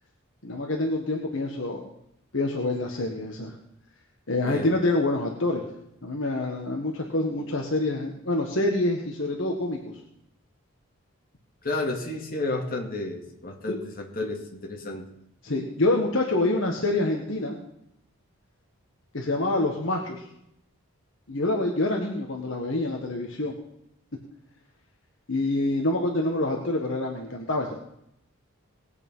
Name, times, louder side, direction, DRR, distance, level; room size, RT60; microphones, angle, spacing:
voice 1, 0.4-1.8 2.3-3.5 4.3-5.6 6.0-9.8 13.7-13.8 15.4-17.6 19.1-20.2 21.3-23.5 25.3-27.7, left 2 dB, 60° left, 1 dB, 1.6 m, -26 dB
voice 2, 11.6-15.1, left 2 dB, 40° left, 1 dB, 2.3 m, -31 dB
19.5 x 8.3 x 5.6 m, 0.77 s
head